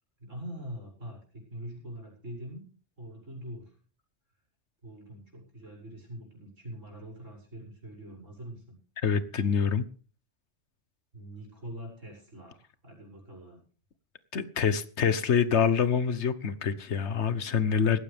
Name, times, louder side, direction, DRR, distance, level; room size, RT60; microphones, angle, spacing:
voice 1, 0.2-2.6 3.0-3.7 4.8-8.8 11.1-12.6 12.8-13.6, equal, 85° right, 0 dB, 6.7 m, -43 dB
voice 2, 9.0-9.8 14.3-18.0, left 6 dB, 65° left, 14 dB, 1.3 m, -26 dB
18.0 x 15.5 x 3.5 m, 0.41 s
omnidirectional pair, 1.3 m